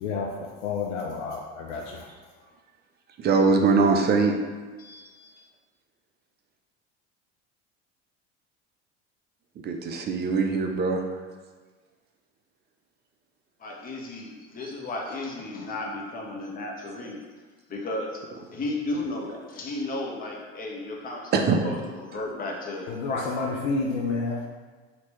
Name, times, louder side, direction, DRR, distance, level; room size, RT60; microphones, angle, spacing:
voice 1, 0.6-2.1 22.9-24.4, left 4 dB, 80° left, -1 dB, 0.5 m, -29 dB
voice 2, 3.2-4.3 9.6-11.0 21.3-21.6, right 4 dB, 30° right, 3 dB, 0.4 m, -22 dB
voice 3, 4.8-5.4 13.6-17.2 17.7-21.3 21.6-23.3, left 2 dB, 25° left, -2 dB, 0.7 m, -34 dB
2.9 x 2.8 x 3.1 m, 1.4 s
hypercardioid pair, 80°, 35 cm